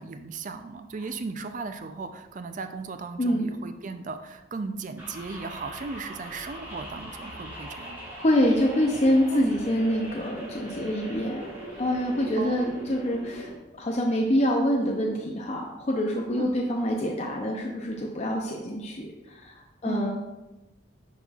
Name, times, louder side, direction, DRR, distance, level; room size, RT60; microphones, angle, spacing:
voice 1, 0.0-8.0 9.3-9.5 12.4-12.7 16.4-16.6 19.8-20.1, right 4 dB, 40° right, 8 dB, 0.4 m, -36 dB
sound 1, 5.0-13.5, right 1 dB, 10° right, 1.5 m, -41 dB
voice 2, 8.2-11.4 11.8-13.5 13.8-19.5 19.8-20.1, equal, 30° left, -1 dB, 0.5 m, -26 dB
10.5 x 4.1 x 2.4 m, 1.1 s
head